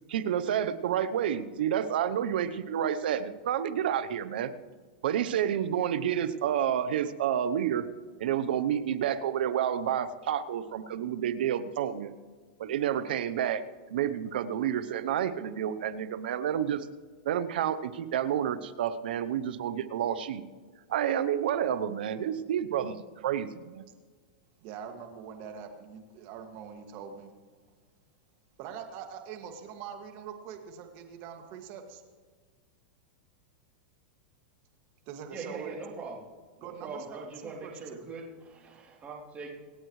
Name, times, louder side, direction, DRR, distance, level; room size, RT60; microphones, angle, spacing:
voice 1, 0.1-4.5 5.0-7.9 8.2-12.1 12.6-13.6 13.9-16.9 17.2-20.4 20.9-23.8, right 9 dB, 75° right, 14 dB, 0.8 m, -29 dB
voice 2, 24.6-27.3 28.6-32.0 35.1-35.7 36.6-38.1, right 7 dB, 50° right, 5 dB, 2.1 m, -43 dB
voice 3, 35.3-36.2 36.6-39.5, right 4 dB, 25° right, -1 dB, 3.2 m, -41 dB
26.5 x 9.0 x 3.2 m, 1.5 s
hypercardioid pair, 130°, 5 cm